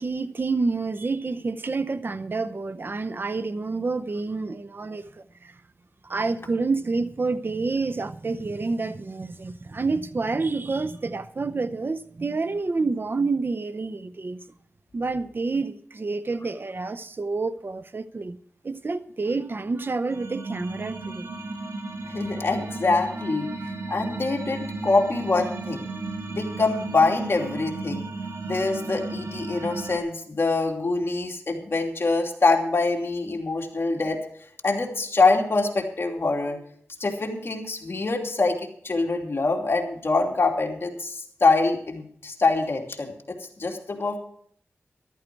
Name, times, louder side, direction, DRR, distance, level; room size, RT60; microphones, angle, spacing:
voice 1, 0.0-5.0 5.4-5.5 6.0-14.4 14.9-18.4 18.6-21.3, right 3 dB, 50° right, 0.7 m, -28 dB
sound 1, 20.1-30.0, right 3 dB, 80° right, 1.9 m, -34 dB
voice 2, 22.0-23.5 23.9-25.9 26.3-28.0 28.4-34.2 34.6-36.6 37.0-38.6 38.8-44.2, left 3 dB, 55° left, 2.8 m, -24 dB
14.0 x 12.5 x 4.6 m
wide cardioid pair, 70°, 5 cm